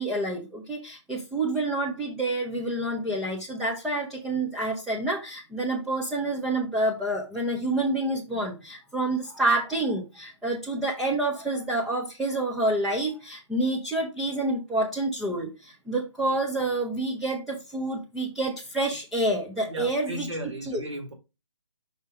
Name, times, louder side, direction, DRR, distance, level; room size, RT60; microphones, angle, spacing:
voice 1, 0.0-20.3 20.6-20.8, right 2 dB, ahead, 0.3 m, -28 dB
voice 2, 19.7-21.1, equal, 75° right, 2.0 m, -36 dB
5.6 x 3.3 x 5.1 m
figure-of-eight pair, 140°, 16 cm